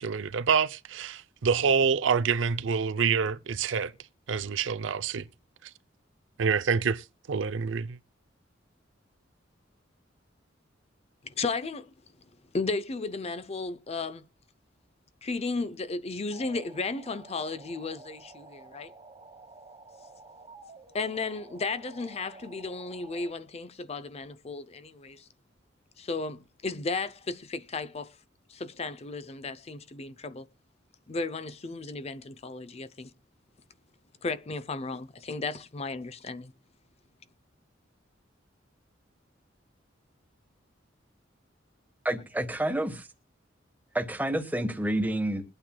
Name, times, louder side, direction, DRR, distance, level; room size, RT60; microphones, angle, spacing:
voice 1, 0.0-3.9 4.3-5.3 6.4-8.0, right 6 dB, 75° right, 0.5 m, -27 dB
voice 2, 11.4-11.9 12.5-14.2 15.2-18.9 20.9-25.2 26.0-28.1 28.5-30.5 31.1-33.1 34.2-36.5, left 3 dB, 35° left, 0.6 m, -34 dB
sound 1, 16.3-23.3, right 3 dB, 30° right, 1.3 m, -51 dB
voice 3, 42.0-43.1 43.9-45.4, right 1 dB, 10° right, 1.2 m, -29 dB
22.0 x 8.8 x 2.2 m
head